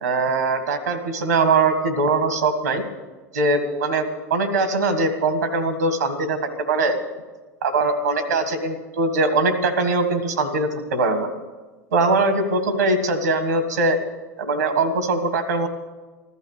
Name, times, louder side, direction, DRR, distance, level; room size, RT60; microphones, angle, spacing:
voice 1, 0.0-2.8 3.3-4.1 4.3-6.4 6.7-7.0 7.6-11.3 11.9-14.0 14.4-15.7, right 3 dB, 85° right, 9 dB, 1.7 m, -21 dB
15.0 x 12.0 x 6.6 m, 1.3 s
hypercardioid pair, 80°, 9 cm